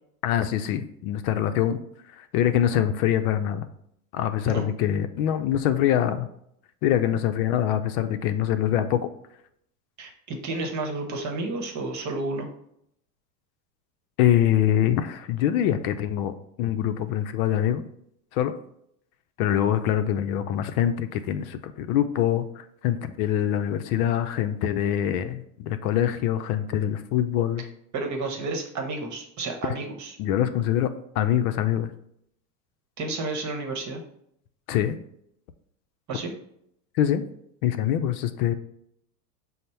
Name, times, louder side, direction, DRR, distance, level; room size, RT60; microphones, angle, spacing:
voice 1, 0.2-1.8 2.1-3.7 4.1-6.3 6.8-9.1 14.2-17.8 18.3-18.5 19.4-27.6 30.2-31.9 34.7-35.0 36.9-37.2 37.6-38.5, left 10 dB, 65° left, 10 dB, 0.6 m, -24 dB
voice 2, 10.0-12.5 27.9-30.2 33.0-34.0 36.1-36.3, right 3 dB, 35° right, 3 dB, 1.1 m, -31 dB
5.2 x 2.1 x 4.4 m, 0.73 s
hypercardioid pair, 100°, 48 cm